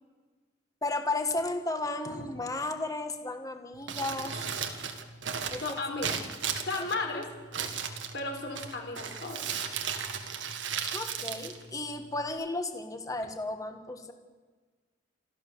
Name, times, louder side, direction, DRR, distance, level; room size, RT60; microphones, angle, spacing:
voice 1, 0.8-4.4 5.5-5.8 6.8-6.9 10.9-14.1, left 2 dB, 20° left, 6 dB, 1.6 m, -34 dB
Crumpling crinkling, 3.7-12.3, right 7 dB, 75° right, 1.8 m, -36 dB
voice 2, 5.6-6.2 6.7-7.3 8.1-9.4, left 3 dB, 60° left, 2 dB, 4.4 m, -34 dB
27.0 x 13.5 x 7.2 m, 1.4 s
head